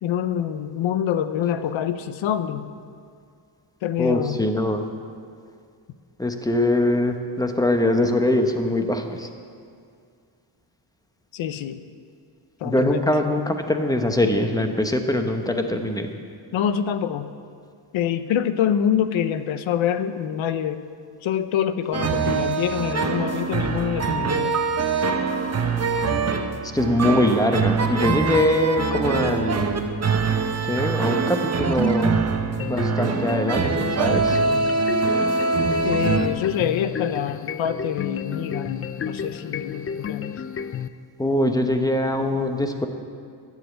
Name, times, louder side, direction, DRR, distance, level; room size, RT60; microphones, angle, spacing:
voice 1, 0.0-2.7 3.8-4.4 11.3-11.8 12.6-13.1 16.5-17.3 17.9-20.8 21.2-24.6 35.8-40.4, left 9 dB, 85° left, 11 dB, 0.7 m, -25 dB
voice 2, 4.0-4.8 6.2-9.3 12.6-16.1 26.7-29.6 30.6-32.2 32.7-34.4 41.2-42.9, left 1 dB, 10° left, 5 dB, 1.0 m, -22 dB
sound 1, 21.9-36.3, right 4 dB, 35° right, 0.9 m, -23 dB
sound 2, 32.6-40.9, left 7 dB, 30° left, 0.4 m, -32 dB
11.5 x 7.4 x 8.1 m, 2.2 s
cardioid pair, 95°, 45 cm